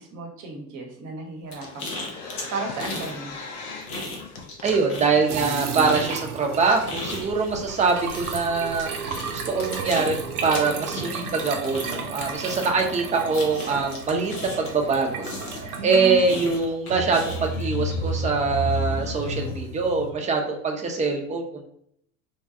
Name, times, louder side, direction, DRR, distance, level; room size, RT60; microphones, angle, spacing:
voice 1, 0.0-3.4 15.7-16.4, right 2 dB, 40° right, 3 dB, 0.9 m, -34 dB
sound 1, 1.5-3.2 3.4-4.6 4.9-14.9 15.2-17.6, left 2 dB, 80° left, 0.8 m, -36 dB
sound 2, 1.6-3.9 4.2-6.0 6.5-6.9 7.4-7.5 7.7-8.4 10.5-10.7 12.5-12.6 12.9-13.0 13.2-13.3 13.6-14.5 15.5-15.8 16.7-20.1, equal, 50° left, 0.7 m, -33 dB
voice 2, 4.6-8.9 9.3-10.1 10.4-15.3 15.6-21.7, right 4 dB, 15° right, 2 dB, 0.5 m, -24 dB
sound 3, 5.3-16.2, right 5 dB, 85° right, 0.6 m, -33 dB
3.3 x 2.2 x 2.7 m, 0.69 s
figure-of-eight pair, 65°, 44 cm